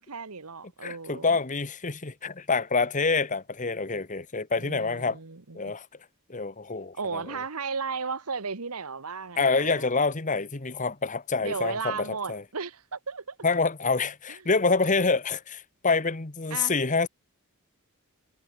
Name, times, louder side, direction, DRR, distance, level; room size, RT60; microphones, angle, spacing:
voice 1, 0.0-1.4 4.6-5.7 7.0-9.9 11.4-13.4 16.5-16.7, right 5 dB, 80° right, 1.5 m, -35 dB
voice 2, 0.8-5.2 5.5-5.9 6.3-7.4 9.4-12.4 13.4-17.1, left 4 dB, 35° left, 1.3 m, -27 dB
head